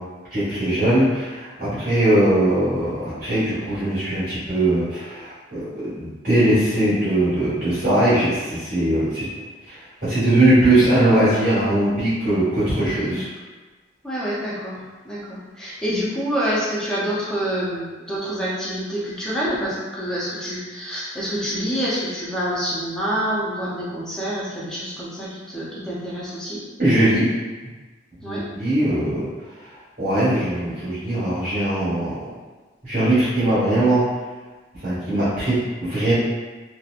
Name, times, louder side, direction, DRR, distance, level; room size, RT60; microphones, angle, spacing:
voice 1, 0.3-5.7 6.0-9.2 9.7-13.3 26.8-27.3 28.2-29.3 30.0-32.2 32.8-34.0 34.8-36.1, right 1 dB, 45° right, -13 dB, 1.3 m, -20 dB
voice 2, 12.8-13.2 14.0-26.6 28.2-28.5, equal, 5° left, -8 dB, 0.5 m, -27 dB
2.8 x 2.1 x 2.4 m, 1.3 s
head